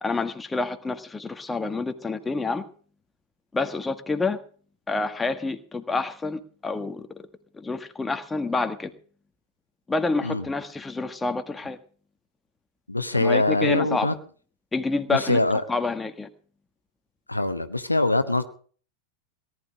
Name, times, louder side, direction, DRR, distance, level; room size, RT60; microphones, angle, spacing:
voice 1, 0.0-2.6 3.5-4.4 4.9-7.1 7.5-8.9 9.9-11.8 13.1-14.2 14.7-15.4 15.7-16.3, left 3 dB, 10° left, 8 dB, 1.6 m, -28 dB
voice 2, 12.9-14.1 15.1-15.6 17.3-18.4, left 2 dB, 85° left, 10 dB, 1.2 m, -23 dB
18.5 x 11.5 x 5.0 m, 0.43 s
figure-of-eight pair, 90°, 0 cm